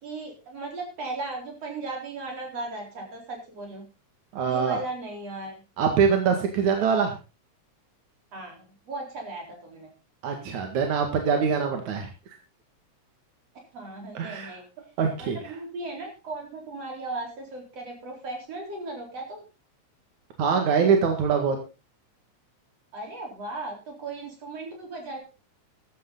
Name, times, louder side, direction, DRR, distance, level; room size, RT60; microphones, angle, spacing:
voice 1, 0.0-3.8 4.4-5.6 8.3-9.9 13.7-14.6 15.2-19.4 22.9-25.2, right 2 dB, 55° right, 2 dB, 5.2 m, -37 dB
voice 2, 4.3-4.8 5.8-7.1 10.2-12.1 14.1-14.5 15.0-15.6 20.4-21.6, right 6 dB, 80° right, 3 dB, 3.4 m, -24 dB
14.5 x 12.0 x 4.0 m, 0.31 s
omnidirectional pair, 3.3 m